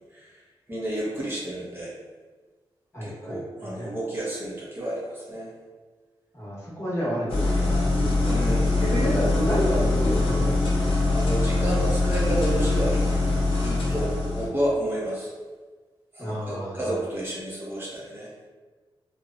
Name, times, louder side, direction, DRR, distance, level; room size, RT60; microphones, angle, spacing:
voice 1, 0.7-1.9 3.0-5.5 8.3-8.9 11.1-13.2 13.6-15.3 16.1-18.3, right 1 dB, 25° right, -6 dB, 0.6 m, -31 dB
voice 2, 2.9-3.9 6.3-10.9 16.2-17.0, equal, 30° left, -8 dB, 0.9 m, -30 dB
sound 1, 7.3-14.5, left 2 dB, 80° left, 0.6 m, -23 dB
2.7 x 2.1 x 2.4 m, 1.4 s
wide cardioid pair, 115°, 9 cm